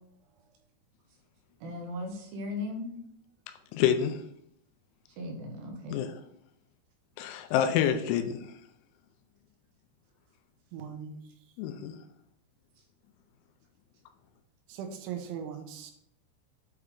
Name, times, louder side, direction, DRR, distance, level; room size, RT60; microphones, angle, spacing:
voice 1, 1.6-2.9 5.2-6.0, left 2 dB, 75° right, 2.9 m, -37 dB
voice 2, 3.7-4.2 5.9-6.1 7.2-8.4 11.6-11.9, left 9 dB, 90° left, 3.0 m, -27 dB
voice 3, 10.7-11.2 14.7-15.9, right 7 dB, 90° right, 3.2 m, -39 dB
8.1 x 3.2 x 3.7 m
omnidirectional pair, 5.3 m